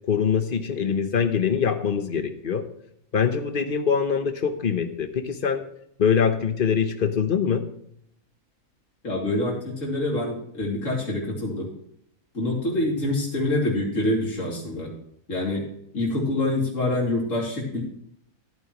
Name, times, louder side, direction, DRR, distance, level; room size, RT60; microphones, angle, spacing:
voice 1, 0.0-2.6 3.1-5.6 6.0-7.6, left 7 dB, 40° left, 8 dB, 1.0 m, -23 dB
voice 2, 9.0-11.7 12.3-14.9 15.3-15.7 15.9-17.8, left 1 dB, 55° left, -3 dB, 3.3 m, -26 dB
14.5 x 8.9 x 3.1 m, 0.73 s
omnidirectional pair, 1.6 m